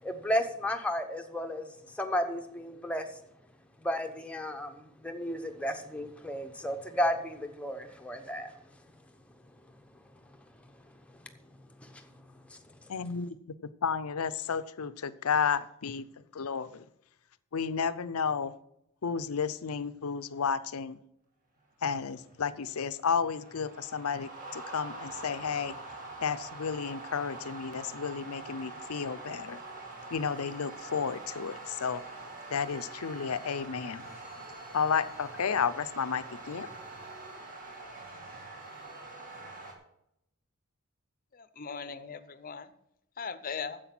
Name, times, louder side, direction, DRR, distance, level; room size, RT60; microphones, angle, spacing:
voice 1, 0.0-1.7 2.0-3.1 3.8-8.5 11.8-12.1 12.5-12.6, equal, 5° left, 6 dB, 0.9 m, -33 dB
voice 2, 12.9-13.4 13.8-16.1 16.3-16.8 17.5-18.5 19.0-21.0 21.8-25.7 26.2-29.6 30.1-32.0 32.5-34.1 34.7-36.7, left 6 dB, 90° left, 14 dB, 0.6 m, -32 dB
sound 1, 21.8-39.7, right 3 dB, 40° right, 2.2 m, -45 dB
voice 3, 41.3-42.7 43.2-43.8, left 6 dB, 40° left, 13 dB, 0.7 m, -39 dB
10.0 x 7.8 x 6.0 m, 0.80 s
head